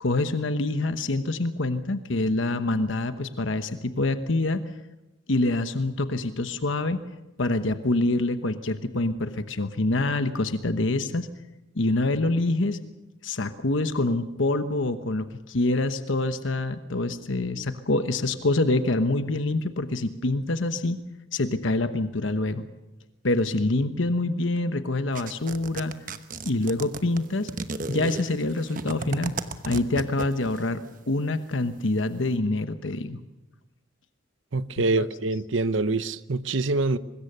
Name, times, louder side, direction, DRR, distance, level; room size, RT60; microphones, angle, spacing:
voice 1, 0.0-4.6 5.3-7.0 7.4-11.3 11.8-12.8 13.2-21.0 21.3-22.6 23.2-25.9 26.4-27.5 27.9-29.4 29.6-30.8 31.1-33.2 35.0-35.1, left 2 dB, 70° left, 1.1 m, -26 dB
sound 1, 25.1-30.6, right 3 dB, 40° right, 1.0 m, -33 dB
voice 2, 34.5-37.0, right 3 dB, 70° right, 0.8 m, -25 dB
24.0 x 20.5 x 6.7 m
head